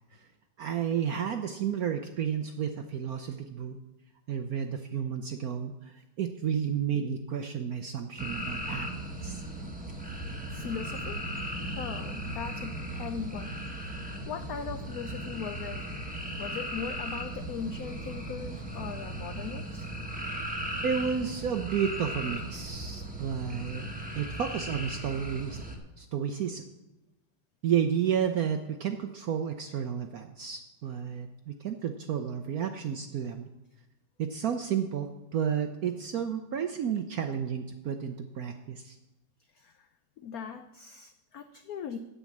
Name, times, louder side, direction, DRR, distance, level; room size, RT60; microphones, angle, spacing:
voice 1, 0.6-3.8 4.3-8.9 9.2-9.4 20.8-23.9 24.1-25.6 26.0-26.6 27.6-33.5 34.2-39.0, right 8 dB, 70° right, 6 dB, 0.8 m, -31 dB
sound 1, 8.2-25.8, right 1 dB, 5° right, 1.0 m, -37 dB
voice 2, 10.5-11.2 11.6-13.6 13.9-15.8 16.4-19.9 39.6-39.9 40.2-42.0, left 7 dB, 85° left, 8 dB, 0.8 m, -39 dB
9.0 x 8.4 x 7.2 m, 1.0 s
omnidirectional pair, 2.2 m